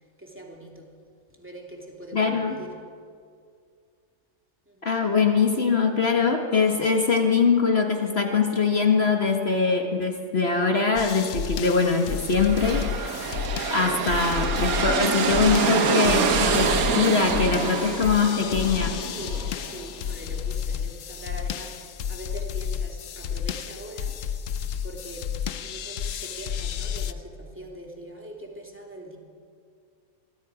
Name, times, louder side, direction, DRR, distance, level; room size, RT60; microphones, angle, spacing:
voice 1, 0.2-1.0 1.4-2.8 4.7-4.9 19.2-24.3 24.8-29.2, right 1 dB, 10° right, 2.8 m, -42 dB
voice 2, 2.1-2.6 4.8-13.1 13.4-19.0, left 5 dB, 45° left, 1.7 m, -22 dB
sound 1, 11.0-27.1, left 8 dB, 65° left, 1.1 m, -32 dB
sound 2, 12.2-19.9, right 5 dB, 75° right, 1.7 m, -26 dB
25.0 x 21.0 x 5.0 m
omnidirectional pair, 1.5 m